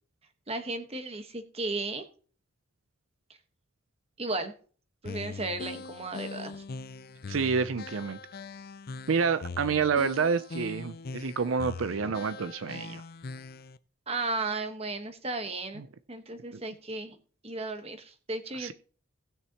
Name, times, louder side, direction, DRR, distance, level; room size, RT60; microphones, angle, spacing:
voice 1, 0.5-2.0 4.2-4.5 5.0-6.6 12.0-12.1 14.1-15.8 16.1-17.2 17.4-18.7, right 3 dB, 30° right, 7 dB, 1.3 m, -34 dB
sound 1, 5.0-13.8, left 4 dB, 50° left, 0.5 m, -41 dB
voice 2, 7.3-8.2 9.1-13.0 15.8-15.9 16.5-16.6 18.6-18.7, right 5 dB, 75° right, 12 dB, 0.5 m, -28 dB
18.5 x 6.6 x 2.9 m, 0.41 s
head